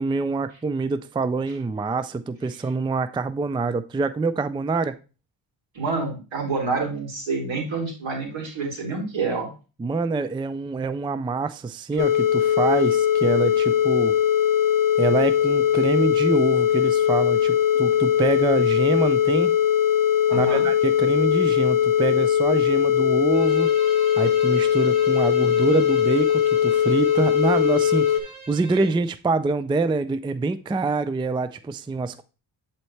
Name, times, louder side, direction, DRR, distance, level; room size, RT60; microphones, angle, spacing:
voice 1, 0.0-5.0 9.8-14.1 15.0-19.5 20.3-23.7 24.2-28.2 28.5-32.2, right 3 dB, 10° right, 0.3 m, -25 dB
voice 2, 5.7-9.5 20.3-20.6, right 4 dB, 75° right, 2.9 m, -28 dB
sound 1, 12.0-28.2, left 10 dB, 45° left, 0.7 m, -20 dB
Bowed string instrument, 23.3-28.9, right 3 dB, 40° right, 2.2 m, -42 dB
7.9 x 4.4 x 3.2 m
cardioid pair, 75°, 46 cm